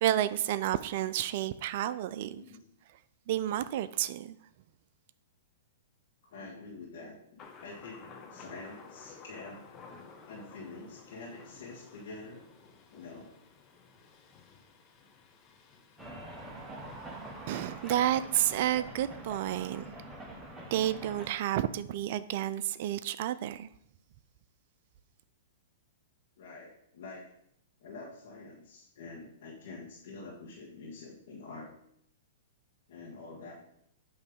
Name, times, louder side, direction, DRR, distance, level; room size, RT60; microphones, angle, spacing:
voice 1, 0.0-2.4 3.3-4.4 17.5-19.8 20.7-23.7, right 12 dB, 55° right, 14 dB, 0.4 m, -30 dB
voice 2, 6.2-9.6 10.3-12.5 12.9-13.3 26.4-27.3 27.8-31.7 32.9-33.5, left 3 dB, 65° left, -2 dB, 1.6 m, -46 dB
Thunder, 7.4-18.3, left 5 dB, 30° left, 1.0 m, -54 dB
sound 1, 16.0-21.3, right 1 dB, 5° right, 1.1 m, -45 dB
8.1 x 3.2 x 5.4 m, 0.73 s
hypercardioid pair, 125°, 0 cm